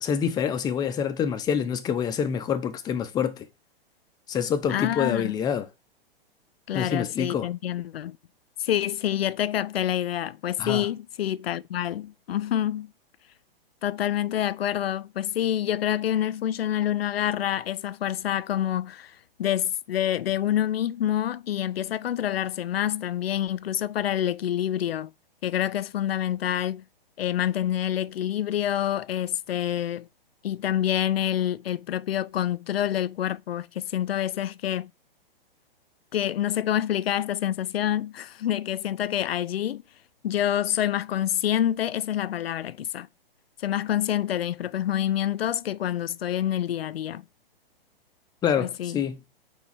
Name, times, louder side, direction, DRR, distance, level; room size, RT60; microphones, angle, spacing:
voice 1, 0.0-3.4 4.3-5.7 6.7-7.5 10.6-10.9 48.4-49.2, left 7 dB, 15° left, 0.6 m, -26 dB
voice 2, 4.7-5.3 6.7-8.2 8.6-12.9 13.8-25.1 25.4-26.8 27.2-30.1 30.4-34.9 36.1-39.8 40.2-43.1 43.6-47.2 48.6-49.0, left 11 dB, 80° left, 0.5 m, -27 dB
4.6 x 4.4 x 5.4 m
hypercardioid pair, 125°, 29 cm